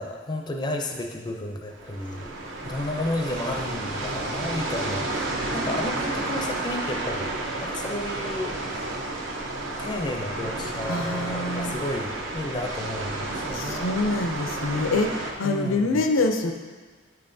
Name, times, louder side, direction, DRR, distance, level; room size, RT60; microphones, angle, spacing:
voice 1, 0.0-2.3 2.6-9.2 9.6-13.9 14.2-14.3 15.4-16.0, left 1 dB, 20° left, 2 dB, 0.4 m, -32 dB
sound 1, 1.7-15.3, right 2 dB, 70° right, 0.8 m, -31 dB
voice 2, 10.9-11.8 13.5-16.5, left 2 dB, 80° left, 5 dB, 0.5 m, -25 dB
9.1 x 5.6 x 2.6 m, 1.4 s
head